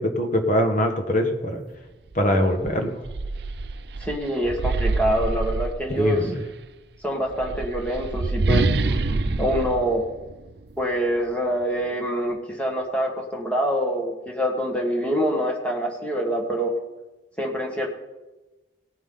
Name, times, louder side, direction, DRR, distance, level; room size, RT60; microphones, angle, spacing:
voice 1, 0.0-1.6 2.1-2.9 6.0-6.4, equal, 45° left, 4 dB, 1.5 m, -22 dB
sound 1, 2.1-2.2 2.6-6.3 7.2-10.8, right 3 dB, 60° right, 0.5 m, -26 dB
voice 2, 4.0-6.3 7.0-10.0 10.8-16.7 17.4-17.9, equal, 5° left, 0 dB, 1.5 m, -25 dB
18.0 x 9.4 x 3.8 m, 1.1 s
head